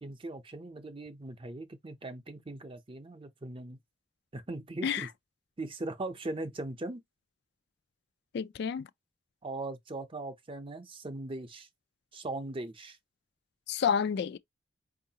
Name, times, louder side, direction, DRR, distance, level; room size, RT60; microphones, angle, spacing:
voice 1, 0.0-3.8 4.3-5.1 5.6-7.0 9.4-11.7 12.1-13.0, right 2 dB, 30° right, 0.6 m, -39 dB
voice 2, 8.3-8.9 13.7-14.4, left 7 dB, 60° left, 0.3 m, -29 dB
4.6 x 2.5 x 2.8 m
head